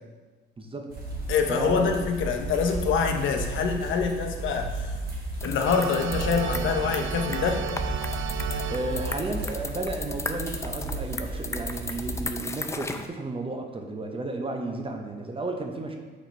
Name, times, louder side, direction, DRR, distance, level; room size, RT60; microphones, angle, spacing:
voice 1, 0.6-0.9 1.5-1.9 8.7-16.0, right 2 dB, 25° right, 3 dB, 0.7 m, -33 dB
sound 1, 0.9-12.2, right 2 dB, 50° right, 2.0 m, -34 dB
voice 2, 1.3-4.9 5.4-7.6, left 6 dB, 75° left, 4 dB, 0.8 m, -25 dB
sound 2, 5.4-13.1, left 3 dB, 15° left, 0.4 m, -36 dB
sound 3, 5.6-10.1, right 7 dB, 80° right, 0.5 m, -35 dB
5.7 x 4.3 x 4.3 m, 1.3 s
cardioid pair, 90°, 20 cm